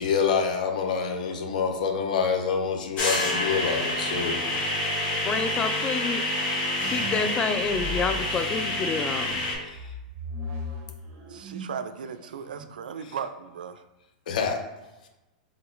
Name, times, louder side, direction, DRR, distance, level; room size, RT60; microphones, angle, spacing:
voice 1, 0.0-4.4 8.3-8.4 9.7-9.9 13.1-13.2 14.3-14.6, left 6 dB, 70° left, 3 dB, 0.8 m, -27 dB
sound 1, 3.0-9.5, left 1 dB, 35° left, 1.4 m, -28 dB
voice 2, 5.2-6.2 6.8-9.4, left 5 dB, 20° left, 9 dB, 0.3 m, -29 dB
sound 2, 6.8-8.8 9.3-11.9 12.2-12.7, left 1 dB, 45° right, 0.8 m, -37 dB
voice 3, 11.3-13.8, right 7 dB, 85° right, 11 dB, 0.3 m, -36 dB
3.6 x 2.9 x 3.7 m, 1.0 s
hypercardioid pair, 120°, 5 cm